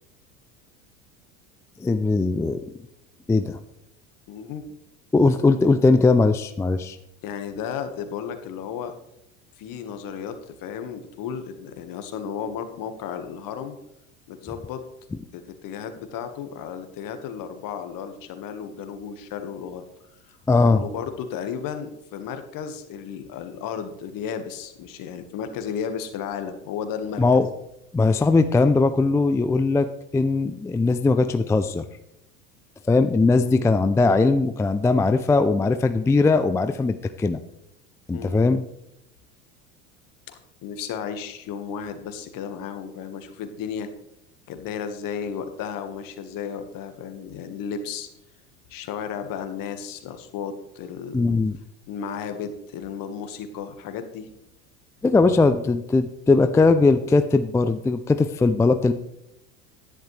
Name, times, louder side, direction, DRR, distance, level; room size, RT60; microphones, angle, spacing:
voice 1, 1.8-2.6 3.3-3.6 5.1-7.0 20.5-20.8 27.2-27.5 27.9-31.8 32.9-37.4 38.1-38.6 51.1-51.6 55.0-58.9, left 3 dB, 5° left, 10 dB, 0.4 m, -20 dB
voice 2, 4.3-4.6 7.2-8.9 9.6-13.7 14.3-14.8 15.3-19.8 20.3-27.2 33.4-33.7 38.1-38.5 40.3-43.9 44.5-48.1 48.7-51.4 51.9-54.3, left 7 dB, 55° left, 8 dB, 1.6 m, -34 dB
10.5 x 10.5 x 3.3 m, 0.82 s
hypercardioid pair, 95°, 41 cm